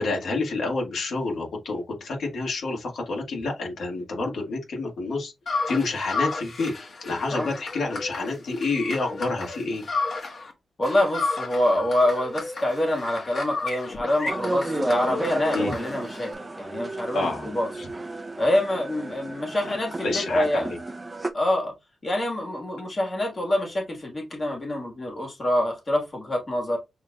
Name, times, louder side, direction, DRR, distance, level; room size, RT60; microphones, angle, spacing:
voice 1, 0.0-6.7 7.0-9.8 15.5-15.7 17.1-17.5 17.8-17.9 20.0-20.8, left 3 dB, 90° left, 1.8 m, -28 dB
sound 1, 5.5-10.5 10.8-16.3, left 3 dB, 55° left, 1.4 m, -33 dB
voice 2, 10.8-17.7 18.4-20.7 21.3-21.7 22.0-26.8, left 1 dB, 30° left, 1.7 m, -26 dB
sound 2, 14.3-21.3, right 2 dB, 20° right, 0.6 m, -33 dB
6.5 x 3.2 x 2.3 m
wide cardioid pair, 140°, 0 cm